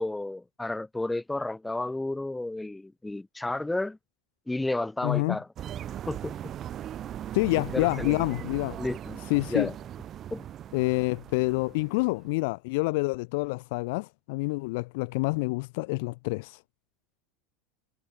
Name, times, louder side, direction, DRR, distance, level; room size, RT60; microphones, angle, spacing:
voice 1, 0.0-4.0 4.5-5.5 6.1-6.5 7.7-8.2 8.8-9.2 9.5-9.7 10.3-10.5, left 2 dB, 10° left, 0.4 m, -32 dB
voice 2, 5.0-5.4 7.3-8.8 9.3-9.7 10.7-16.6, left 25 dB, 65° left, 0.4 m, -27 dB
sound 1, 5.6-12.3, right 11 dB, 40° right, 1.2 m, -39 dB
hypercardioid pair, 95°, 0 cm